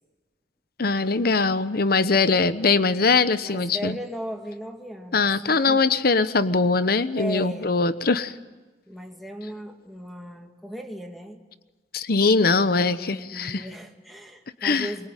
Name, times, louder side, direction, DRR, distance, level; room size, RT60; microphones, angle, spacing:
voice 1, 0.8-4.0 5.1-8.3 11.9-13.6 14.6-14.9, left 4 dB, 60° left, 13 dB, 1.0 m, -21 dB
voice 2, 2.1-2.6 3.4-5.8 7.2-7.7 8.9-11.4 12.6-15.1, equal, ahead, 3 dB, 2.4 m, -37 dB
24.0 x 22.5 x 9.1 m, 1.2 s
head